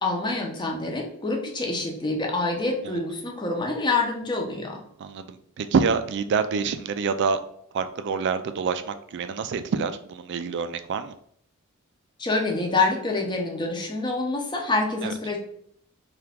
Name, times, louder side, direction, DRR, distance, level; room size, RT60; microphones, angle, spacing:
voice 1, 0.0-4.8 12.2-15.4, left 3 dB, 20° left, 0 dB, 0.6 m, -26 dB
voice 2, 5.0-7.4 7.7-11.1 15.0-15.1, right 5 dB, 50° right, 10 dB, 0.3 m, -26 dB
2.9 x 2.4 x 3.4 m, 0.66 s
head